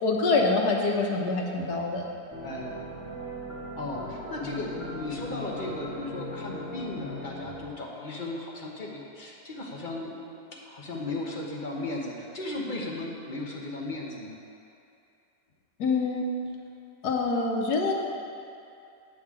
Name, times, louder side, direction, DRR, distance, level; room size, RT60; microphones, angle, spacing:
voice 1, 0.0-2.0 15.8-16.3 17.0-17.9, left 3 dB, 80° left, 1 dB, 1.5 m, -25 dB
sound 1, 2.3-7.5, left 1 dB, 10° right, 1.6 m, -39 dB
voice 2, 2.4-2.8 3.8-10.2 10.6-14.4, left 2 dB, 35° left, -3 dB, 1.0 m, -36 dB
8.9 x 7.9 x 3.7 m, 2.5 s
omnidirectional pair, 1.7 m